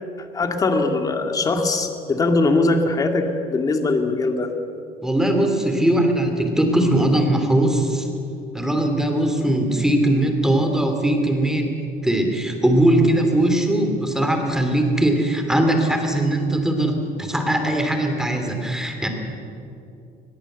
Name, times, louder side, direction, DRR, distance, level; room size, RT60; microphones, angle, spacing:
voice 1, 0.3-4.5, left 3 dB, 20° left, 5 dB, 2.1 m, -21 dB
voice 2, 5.0-8.1 8.5-11.7 12.0-16.9 17.2-19.1, right 1 dB, 5° right, 4 dB, 2.9 m, -20 dB
22.0 x 21.5 x 8.0 m, 2.7 s
cardioid pair, 165°, 16 cm